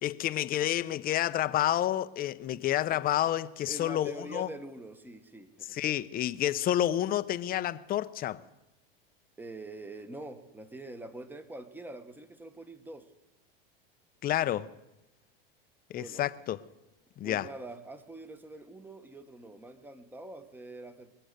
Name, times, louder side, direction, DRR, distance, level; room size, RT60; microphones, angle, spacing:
voice 1, 0.0-4.5 5.7-8.4 14.2-14.7 15.9-16.6 17.2-17.5, left 12 dB, 30° left, 0.6 m, -29 dB
voice 2, 3.6-6.0 9.4-13.1 15.9-16.3 17.2-21.1, right 2 dB, 5° right, 1.1 m, -45 dB
22.5 x 7.8 x 6.6 m
supercardioid pair, 115°, 30 cm